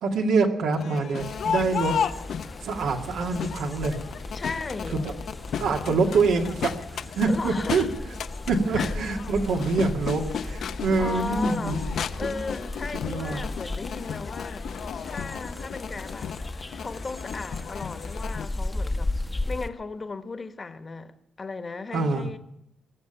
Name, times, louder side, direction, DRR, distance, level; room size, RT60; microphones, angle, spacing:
voice 1, 0.0-2.0 2.6-4.0 4.9-5.1 5.6-6.7 7.2-7.9 8.5-12.3 13.1-13.4 21.9-22.3, right 4 dB, 75° right, 2.2 m, -25 dB
Crowd, 0.7-18.4, left 7 dB, 65° left, 0.7 m, -34 dB
sound 1, 1.2-19.7, left 2 dB, 15° left, 1.0 m, -36 dB
voice 2, 4.3-5.0 5.9-6.3 7.3-7.9 8.7-8.9 11.0-11.8 12.2-14.7 15.0-16.4 16.8-19.2 19.5-22.4, left 4 dB, 30° left, 1.3 m, -36 dB
21.5 x 7.2 x 9.0 m
cardioid pair, 90°, 0 cm